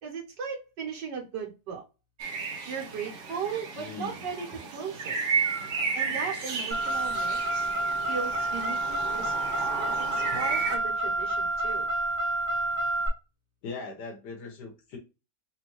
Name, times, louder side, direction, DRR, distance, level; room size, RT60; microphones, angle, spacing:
voice 1, 0.0-1.8 2.7-5.2 5.9-7.7 8.1-11.9, right 6 dB, 85° right, 1.7 m, -37 dB
sound 1, 2.2-10.8, right 5 dB, 55° right, 0.9 m, -33 dB
voice 2, 3.8-4.3 13.6-15.0, left 4 dB, 80° left, 1.6 m, -40 dB
Car, 6.7-13.1, right 2 dB, 25° left, 0.4 m, -29 dB
4.2 x 2.7 x 2.9 m
omnidirectional pair, 1.8 m